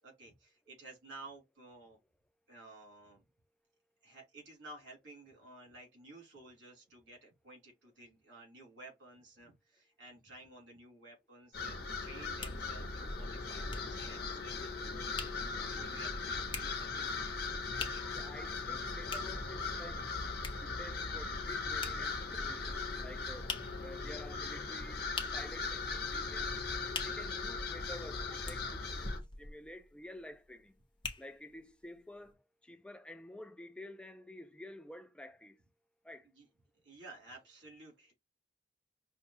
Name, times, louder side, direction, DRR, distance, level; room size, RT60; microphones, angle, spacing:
voice 1, 0.0-2.0 2.5-3.2 4.0-17.2 17.7-18.5 36.2-36.5 36.8-38.1, right 2 dB, 80° right, 3.0 m, -54 dB
sound 1, 11.5-29.2, left 4 dB, 60° left, 1.0 m, -39 dB
sound 2, 12.4-31.7 32.2-32.3, left 4 dB, 25° left, 0.8 m, -47 dB
voice 2, 18.1-20.1 20.5-23.5 23.8-25.0 25.3-26.6 27.0-28.8 29.4-30.7 31.2-32.4 32.6-35.6 36.0-36.3, left 1 dB, 5° left, 0.4 m, -50 dB
5.7 x 2.3 x 2.8 m
head